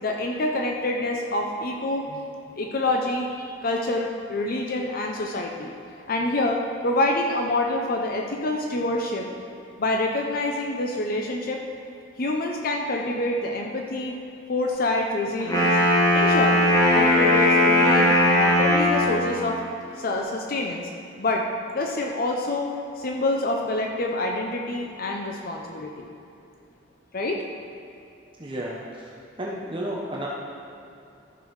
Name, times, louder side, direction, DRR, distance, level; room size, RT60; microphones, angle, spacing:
voice 1, 0.0-2.2 2.6-5.7 6.1-9.3 9.8-11.6 12.2-14.2 14.5-15.8 16.1-16.7 16.9-19.6 20.0-20.9 21.2-21.5 21.7-26.1 27.1-27.4, left 2 dB, 50° left, 1 dB, 0.7 m, -27 dB
Wind instrument woodwind instrument, 15.4-19.4, left 1 dB, 20° left, 1.7 m, -19 dB
voice 2, 28.4-28.8 29.4-30.3, right 1 dB, 25° right, -4 dB, 0.9 m, -31 dB
13.5 x 6.2 x 4.8 m, 2.7 s
head